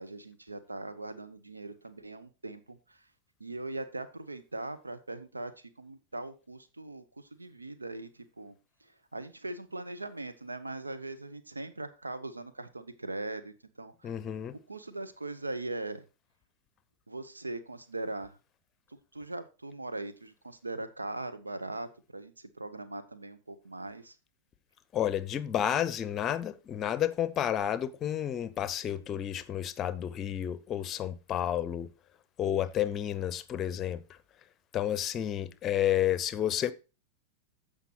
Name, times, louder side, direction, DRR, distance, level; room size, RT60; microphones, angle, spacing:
voice 1, 0.0-3.0 3.4-8.5 8.8-14.1 14.7-16.0 17.1-18.4 18.9-24.1, right 2 dB, 80° right, 0.9 m, -40 dB
voice 2, 14.0-14.5 24.9-31.9 32.4-34.0 34.7-36.7, left 10 dB, 30° left, 0.7 m, -31 dB
15.0 x 5.2 x 2.9 m
figure-of-eight pair, 90°, 0 cm